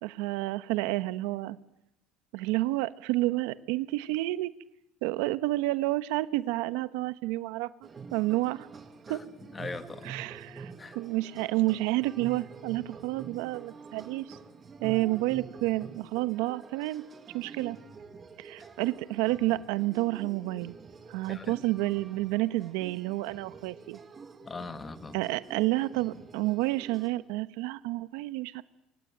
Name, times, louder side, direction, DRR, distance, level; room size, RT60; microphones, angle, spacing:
voice 1, 0.0-1.6 2.3-4.5 5.0-8.7 9.1-9.2 10.0-14.4 14.8-17.0 17.3-17.8 18.4-20.7 21.1-24.0 25.1-28.6, right 18 dB, 75° right, 14 dB, 1.1 m, -30 dB
sound 1, 7.8-27.1, right 5 dB, 20° right, 2.1 m, -47 dB
voice 2, 9.5-10.1 10.8-11.0 18.6-18.7 21.3-21.6 24.4-25.2, left 4 dB, 15° left, 11 dB, 1.4 m, -40 dB
25.5 x 25.5 x 9.2 m, 0.87 s
cardioid pair, 170°, 0 cm